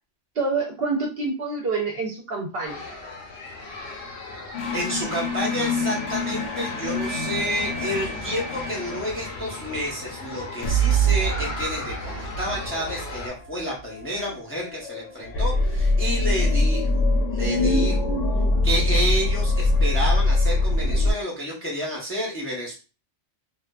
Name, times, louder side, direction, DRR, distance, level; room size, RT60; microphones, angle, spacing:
voice 1, 0.4-2.8 17.4-18.6, right 2 dB, 60° right, -1 dB, 0.8 m, -27 dB
sound 1, 2.7-13.3, left 2 dB, 65° left, 1.0 m, -37 dB
sound 2, 4.5-10.3 10.6-21.1, left 1 dB, 90° left, 1.0 m, -24 dB
voice 2, 4.7-17.0 17.3-18.0 18.6-22.7, equal, 15° left, -3 dB, 0.6 m, -30 dB
2.5 x 2.3 x 2.3 m, 0.33 s
omnidirectional pair, 1.2 m